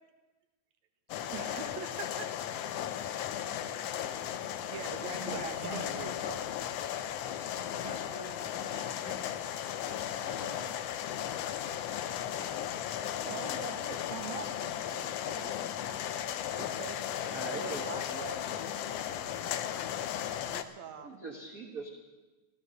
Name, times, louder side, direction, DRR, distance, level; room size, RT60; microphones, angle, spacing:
sound 1, 1.1-20.6, left 10 dB, 75° left, 1.5 m, -36 dB
voice 1, 1.3-2.5 3.0-3.1 4.6-6.1 13.2-15.6 16.6-19.7 20.5-21.2, right 7 dB, 70° right, 6 dB, 2.1 m, -45 dB
voice 2, 7.8-9.4 10.2-10.7, right 1 dB, 25° left, -3 dB, 1.4 m, -45 dB
voice 3, 17.2-18.4 21.0-21.9, right 3 dB, 45° right, 0 dB, 1.2 m, -41 dB
14.5 x 14.0 x 6.4 m, 1.2 s
omnidirectional pair, 3.4 m